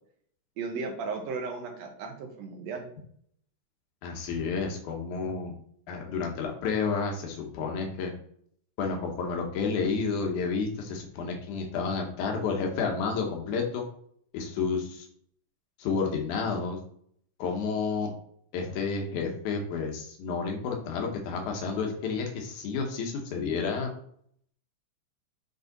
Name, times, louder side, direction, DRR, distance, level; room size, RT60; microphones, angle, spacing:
voice 1, 0.6-2.9, right 4 dB, 65° right, 2 dB, 2.2 m, -35 dB
voice 2, 4.0-5.5 5.9-8.1 8.8-13.9 14.3-15.1 15.8-16.8 17.4-18.1 18.5-23.9, left 5 dB, 75° left, 2 dB, 2.5 m, -30 dB
8.0 x 3.4 x 4.0 m, 0.64 s
omnidirectional pair, 3.7 m